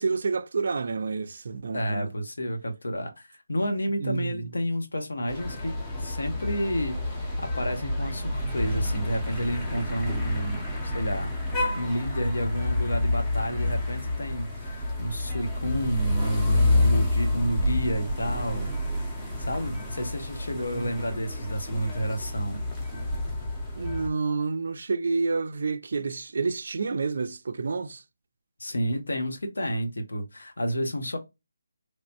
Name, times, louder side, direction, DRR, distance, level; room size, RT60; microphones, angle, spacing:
voice 1, 0.0-2.1 4.0-4.5 20.5-21.0 22.5-22.6 22.9-23.2 23.8-28.0, right 4 dB, 50° right, 0.3 m, -29 dB
voice 2, 1.7-11.3 11.8-18.7 19.4-22.6 28.6-31.2, equal, 90° left, 0.8 m, -30 dB
sound 1, 5.3-24.1, left 2 dB, 5° left, 0.5 m, -29 dB
3.1 x 2.1 x 2.7 m
hypercardioid pair, 175°, 0 cm